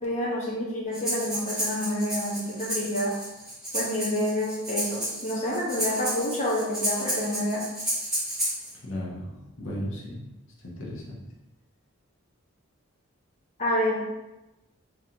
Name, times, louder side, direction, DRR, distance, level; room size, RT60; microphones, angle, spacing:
voice 1, 0.0-3.1 3.7-7.6 13.6-14.0, left 1 dB, 30° left, -4 dB, 0.9 m, -28 dB
Breathing, 0.9-8.7, right 1 dB, 5° right, 1.3 m, -31 dB
voice 2, 8.8-10.2 10.6-11.2, equal, 65° left, -4 dB, 0.9 m, -35 dB
3.8 x 3.0 x 2.8 m, 1.0 s
head